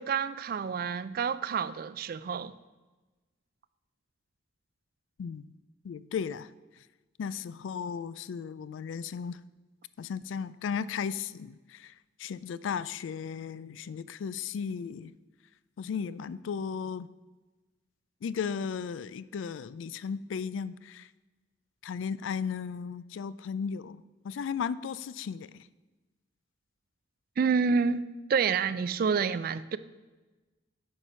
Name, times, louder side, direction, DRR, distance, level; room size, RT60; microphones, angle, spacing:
voice 1, 0.0-2.5 27.4-29.8, right 5 dB, 50° right, 16 dB, 0.3 m, -28 dB
voice 2, 5.8-6.5 7.2-9.4 10.0-11.9 12.2-15.1 15.8-17.1 18.2-21.1 21.8-24.0 24.2-25.7, left 6 dB, 80° left, 17 dB, 0.3 m, -35 dB
8.9 x 4.6 x 5.5 m, 1.2 s
head